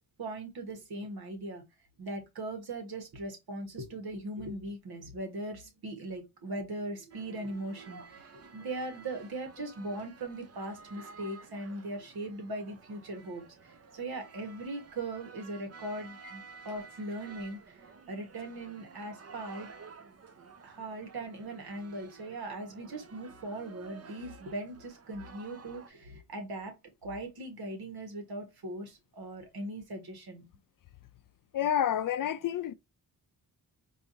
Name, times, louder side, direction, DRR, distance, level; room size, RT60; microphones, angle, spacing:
voice 1, 0.2-1.6 2.0-19.7 20.6-26.7 27.0-30.4, right 2 dB, 80° right, 1.6 m, -40 dB
sound 1, 7.1-25.9, right 5 dB, 40° right, 0.6 m, -52 dB
voice 2, 31.5-32.7, left 10 dB, 60° left, 0.5 m, -29 dB
4.7 x 2.6 x 2.8 m
wide cardioid pair, 135°, 37 cm